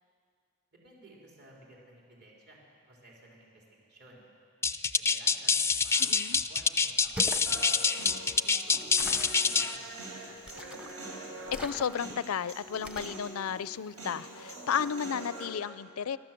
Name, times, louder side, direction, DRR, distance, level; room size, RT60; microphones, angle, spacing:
voice 1, 0.8-2.6 2.9-4.2 5.0-9.1 9.6-10.4, right 1 dB, 50° right, -3 dB, 4.5 m, -55 dB
sound 1, 4.6-9.8, left 5 dB, 10° left, 0.4 m, -26 dB
voice 2, 6.0-6.4 11.5-16.2, left 7 dB, 75° left, 17 dB, 0.5 m, -33 dB
sound 2, 7.0-7.5 9.0-9.4 10.5-11.0 11.5-12.2 12.8-13.2, equal, 5° right, 0.8 m, -42 dB
Human voice, 7.5-15.5, right 2 dB, 65° right, 4.7 m, -44 dB
26.5 x 13.0 x 7.7 m, 2.2 s
head